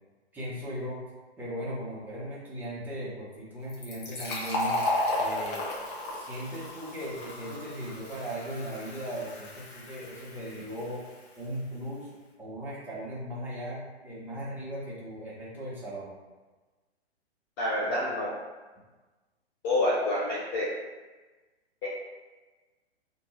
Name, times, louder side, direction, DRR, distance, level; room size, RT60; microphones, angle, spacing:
voice 1, 0.3-1.0 1.4-4.8 5.2-5.6 6.1-11.0 11.4-16.1, equal, 5° right, -8 dB, 0.8 m, -38 dB
Fill (with liquid), 3.7-11.1, left 1 dB, 40° left, 0.9 m, -34 dB
voice 2, 17.6-18.3 19.6-20.7 21.8-21.9, left 1 dB, 20° left, -6 dB, 0.4 m, -27 dB
2.9 x 2.6 x 4.1 m, 1.2 s
figure-of-eight pair, 115°, 33 cm